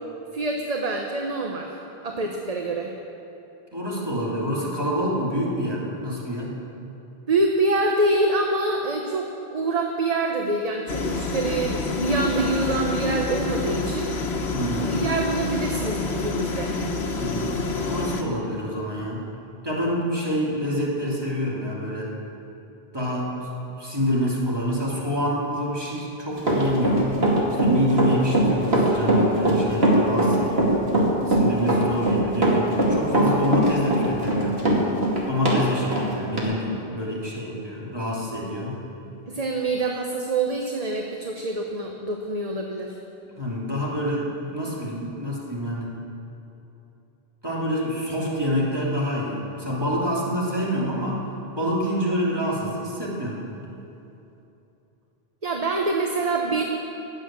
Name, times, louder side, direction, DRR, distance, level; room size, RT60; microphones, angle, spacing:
voice 1, 0.3-1.7 2.0-2.9 7.3-14.1 14.8-16.7 39.3-43.0 55.4-56.6, right 2 dB, 40° right, 1 dB, 1.0 m, -25 dB
voice 2, 3.7-6.5 14.5-15.0 17.1-19.2 19.6-22.1 22.9-23.3 23.8-27.1 27.6-30.8 31.3-34.6 35.3-38.8 43.3-45.9 47.4-51.2 51.5-53.4, equal, 25° right, -6 dB, 3.0 m, -27 dB
sound 1, 10.9-18.2, left 3 dB, 85° left, 1.4 m, -27 dB
Run, 26.4-35.6 35.9-36.0 36.4-36.5, right 1 dB, 70° right, 2.8 m, -20 dB
19.5 x 7.8 x 7.5 m, 2.9 s
omnidirectional pair, 1.1 m